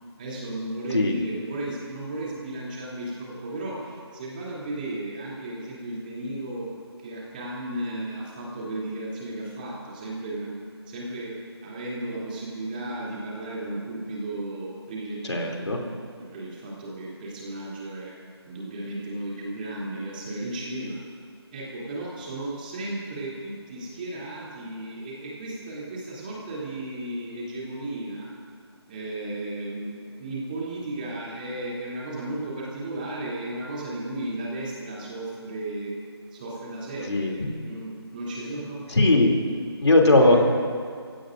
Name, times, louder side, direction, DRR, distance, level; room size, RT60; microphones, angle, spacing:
voice 1, 0.2-6.7 7.0-10.6 10.9-18.2 18.4-21.0 21.5-28.3 28.9-35.9 36.3-38.8 39.3-39.5 40.1-40.4, right 1 dB, 20° right, -5 dB, 3.0 m, -34 dB
voice 2, 15.3-15.8 37.1-37.3 38.9-39.4 39.8-40.4, left 2 dB, 80° left, 1 dB, 3.0 m, -18 dB
29.5 x 16.5 x 2.6 m, 2.1 s
figure-of-eight pair, 170°, 14 cm